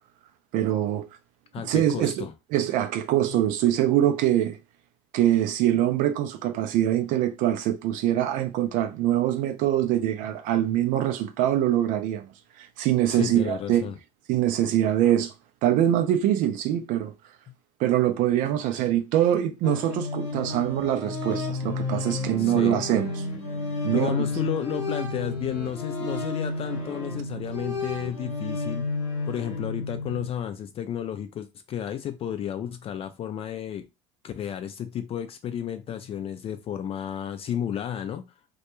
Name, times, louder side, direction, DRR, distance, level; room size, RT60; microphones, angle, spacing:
voice 1, 0.5-1.1 1.6-2.3 2.5-4.6 5.1-12.2 12.6-13.9 14.3-15.3 15.6-17.1 17.8-23.3 23.8-24.2, right 12 dB, 60° right, 0.4 m, -24 dB
voice 2, 1.5-2.3 13.1-14.0 22.4-22.8 23.9-28.9 29.3-33.8 34.2-38.2, left 9 dB, 40° left, 0.4 m, -32 dB
sound 1, 19.6-30.3, left 3 dB, 90° left, 1.0 m, -31 dB
2.2 x 2.1 x 2.9 m
hypercardioid pair, 70°, 15 cm